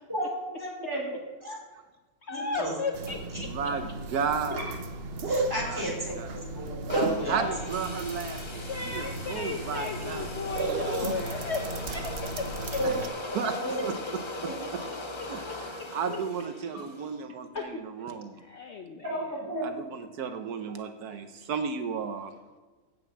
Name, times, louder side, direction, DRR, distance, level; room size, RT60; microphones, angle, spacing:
voice 1, 0.1-1.6 2.3-2.7 5.2-7.4 12.8-12.9 13.5-13.8 14.4-14.5 19.0-19.7, right 1 dB, 15° right, -4 dB, 4.0 m, -33 dB
voice 2, 2.2-3.5 8.7-12.8 15.8-15.9 17.5-17.8 18.4-19.3, left 4 dB, 55° left, 4 dB, 0.9 m, -35 dB
sound 1, 2.9-13.1, right 2 dB, 50° right, 0.8 m, -35 dB
voice 3, 3.4-4.6 5.7-5.9 6.1-6.3 7.2-10.2 12.8-12.9 13.3-13.5 13.8-13.9 14.7-14.8 15.3-18.4 19.6-22.3, right 6 dB, 80° right, 7 dB, 1.3 m, -33 dB
sound 2, 6.9-17.1, left 2 dB, 30° left, 0.6 m, -40 dB
7.9 x 7.3 x 8.1 m, 1.3 s
omnidirectional pair, 1.6 m